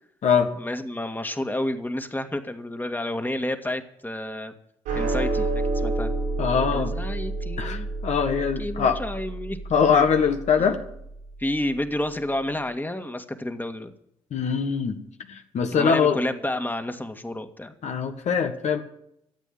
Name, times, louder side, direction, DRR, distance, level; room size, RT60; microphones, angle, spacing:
voice 1, 0.6-4.5 4.9-6.1 6.7-7.9 8.3-9.6 9.9-10.1 10.6-10.7 11.4-13.9 15.7-17.7, left 1 dB, 15° left, 7 dB, 2.0 m, -30 dB
sound 1, 4.9-11.4, right 2 dB, 85° right, 5.5 m, -29 dB
voice 2, 6.4-6.9 7.6-9.0 9.7-10.8 14.3-15.0 15.3-16.2 17.8-18.8, left 6 dB, 60° left, 5 dB, 1.6 m, -22 dB
14.0 x 8.3 x 9.5 m, 0.75 s
hypercardioid pair, 45°, 13 cm